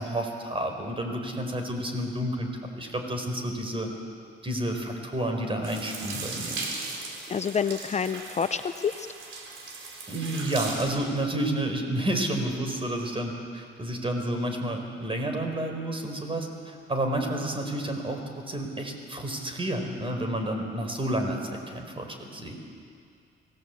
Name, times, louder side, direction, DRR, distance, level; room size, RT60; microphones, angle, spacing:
voice 1, 0.0-2.5 2.8-3.9 4.4-6.6 10.1-22.7, right 1 dB, 25° right, 4 dB, 4.6 m, -30 dB
sound 1, 5.6-10.9, right 3 dB, 75° right, 4.3 m, -38 dB
voice 2, 7.3-9.1, left 6 dB, 35° left, 11 dB, 0.7 m, -28 dB
26.0 x 17.5 x 8.4 m, 2.3 s
cardioid pair, 90°, 20 cm